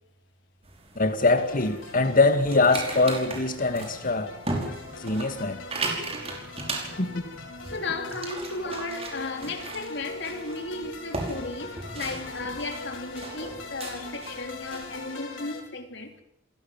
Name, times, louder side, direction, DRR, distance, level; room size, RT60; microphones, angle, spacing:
sound 1, 0.6-15.1, right 2 dB, 35° right, 5.4 m, -37 dB
voice 1, 1.0-4.3 5.0-5.6 7.0-7.3, left 3 dB, 45° left, 2.3 m, -23 dB
sound 2, 1.4-15.6, left 3 dB, 90° left, 4.9 m, -42 dB
voice 2, 7.7-16.2, left 3 dB, 65° left, 3.7 m, -35 dB
28.5 x 16.5 x 7.4 m
head